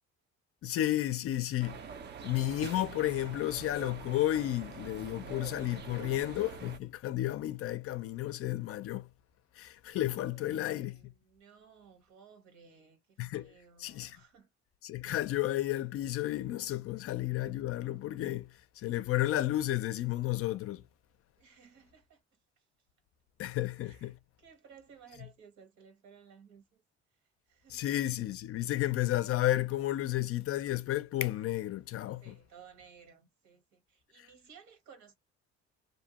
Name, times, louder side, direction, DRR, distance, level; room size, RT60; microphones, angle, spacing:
voice 1, 0.6-1.8 2.2-9.1 9.6-11.0 13.2-13.5 13.8-14.2 14.8-18.5 18.8-20.8 23.4-24.1 27.7-32.4, left 14 dB, 50° left, 0.4 m, -32 dB
sound 1, 1.6-6.8, right 6 dB, 35° right, 0.5 m, -45 dB
voice 2, 10.2-14.5 16.9-17.0 21.4-22.2 22.6-22.7 23.8-26.8 27.5-27.8 30.3-30.4 32.2-35.1, right 6 dB, 70° right, 1.2 m, -58 dB
2.6 x 2.1 x 2.7 m
cardioid pair, 130°, 29 cm